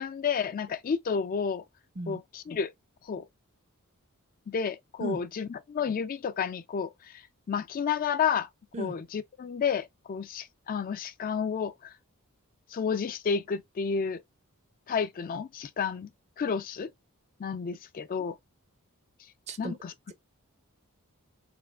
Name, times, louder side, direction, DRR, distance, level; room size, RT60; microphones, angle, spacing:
voice 1, 0.0-1.7 2.1-2.7 3.0-3.3 4.5-8.5 8.8-11.9 12.7-14.2 14.9-16.1 16.4-16.9 17.4-18.4 19.6-19.9, left 6 dB, 40° left, 0.3 m, -31 dB
voice 2, 2.0-2.2 5.0-5.2 8.7-9.0 19.5-19.7, right 2 dB, 30° right, 0.5 m, -35 dB
4.3 x 2.4 x 2.3 m
head